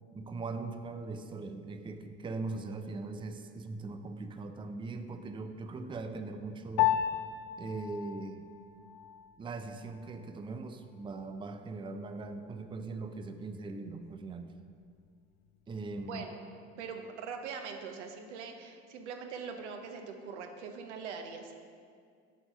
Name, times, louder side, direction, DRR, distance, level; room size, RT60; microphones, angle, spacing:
voice 1, 0.1-7.0 7.6-8.5 9.4-14.5 15.7-16.3, right 3 dB, 15° right, 7 dB, 0.5 m, -40 dB
Piano, 6.8-16.4, left 11 dB, 55° left, 0.5 m, -37 dB
voice 2, 16.0-16.5 16.8-21.5, right 5 dB, 85° right, 4 dB, 0.8 m, -42 dB
7.4 x 4.6 x 5.4 m, 2.2 s
hypercardioid pair, 75°, 34 cm